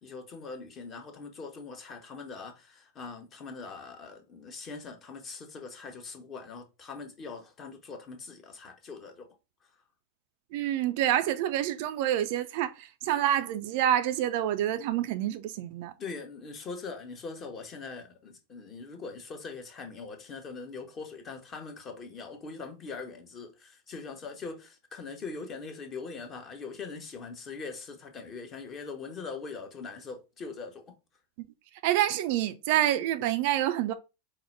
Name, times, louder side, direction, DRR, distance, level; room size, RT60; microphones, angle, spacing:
voice 1, 0.0-9.3 16.0-31.0, left 4 dB, 30° left, 0.9 m, -42 dB
voice 2, 10.5-15.9 31.8-33.9, right 12 dB, 50° right, 0.4 m, -27 dB
4.8 x 2.1 x 4.4 m
figure-of-eight pair, 90°, 0 cm